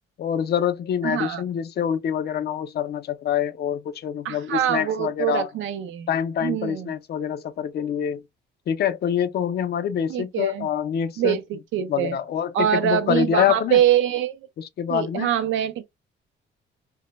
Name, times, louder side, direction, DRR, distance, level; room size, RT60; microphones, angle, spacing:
voice 1, 0.2-5.5 6.1-8.2 8.7-11.4 11.9-13.8 14.6-15.3, left 9 dB, 55° left, 0.4 m, -25 dB
voice 2, 1.0-1.4 4.2-6.1 6.4-6.9 10.1-10.7 11.2-12.2 12.5-14.4 14.9-15.8, right 10 dB, 75° right, 0.4 m, -24 dB
2.1 x 2.1 x 3.0 m
cardioid pair, 90°, 20 cm